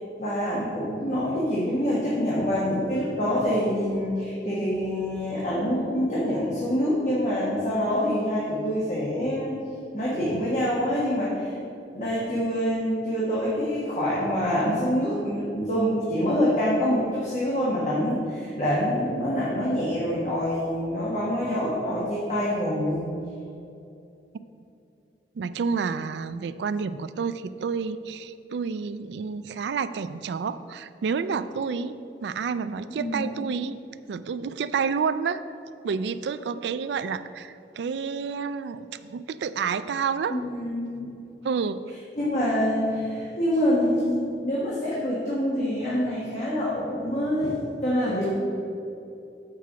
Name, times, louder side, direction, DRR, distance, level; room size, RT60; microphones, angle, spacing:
voice 1, 0.2-9.6 9.9-11.6 11.9-23.1 32.9-33.4 40.3-41.1 42.2-47.5 47.8-48.3, equal, 40° left, -7 dB, 1.4 m, -26 dB
voice 2, 25.4-33.8 34.1-35.4 35.8-40.4 41.4-41.8, right 5 dB, 75° right, 14 dB, 0.3 m, -29 dB
7.6 x 4.7 x 6.1 m, 2.7 s
head